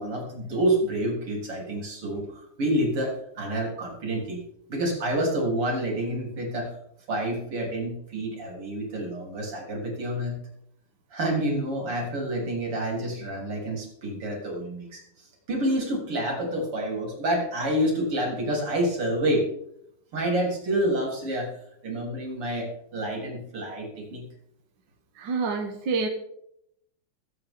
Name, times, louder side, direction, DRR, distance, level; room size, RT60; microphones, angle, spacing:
voice 1, 0.0-2.3 2.6-6.7 7.1-10.4 11.1-15.0 15.5-19.5 20.1-21.5 21.8-24.3, right 1 dB, 85° right, 0 dB, 4.7 m, -28 dB
voice 2, 25.2-26.1, right 4 dB, 55° right, 4 dB, 1.9 m, -27 dB
23.0 x 8.1 x 3.8 m, 0.73 s
omnidirectional pair, 2.4 m